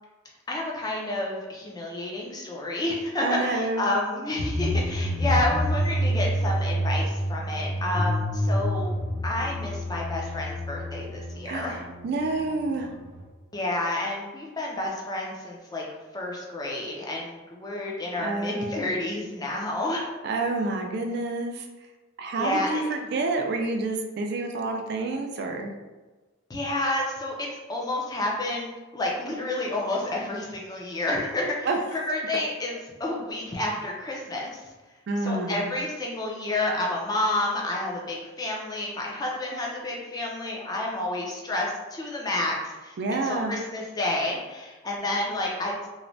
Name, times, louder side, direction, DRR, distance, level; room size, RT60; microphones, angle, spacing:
voice 1, 0.5-8.9 9.2-11.8 13.5-15.8 16.1-20.1 22.4-22.8 26.5-34.6 35.2-45.9, left 1 dB, 20° left, -2 dB, 0.4 m, -30 dB
voice 2, 3.2-3.9 11.5-12.9 18.2-18.9 20.2-21.6 22.2-25.7 31.6-31.8 35.1-35.6 43.0-43.5, right 3 dB, 55° right, 3 dB, 0.3 m, -28 dB
sound 1, 4.4-13.2, equal, 80° right, 0.9 m, -28 dB
3.0 x 2.1 x 2.6 m, 1.2 s
head